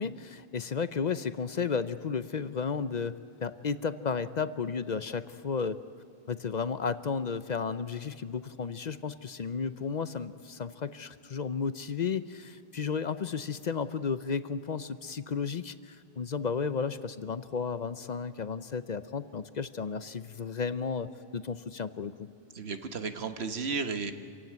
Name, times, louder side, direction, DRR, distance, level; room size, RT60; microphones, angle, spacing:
voice 1, 0.0-5.8 6.3-22.3, left 5 dB, 50° left, 13 dB, 0.7 m, -33 dB
voice 2, 22.5-24.1, right 4 dB, 90° right, 8 dB, 1.5 m, -33 dB
27.0 x 16.0 x 9.4 m, 2.7 s
omnidirectional pair, 1.0 m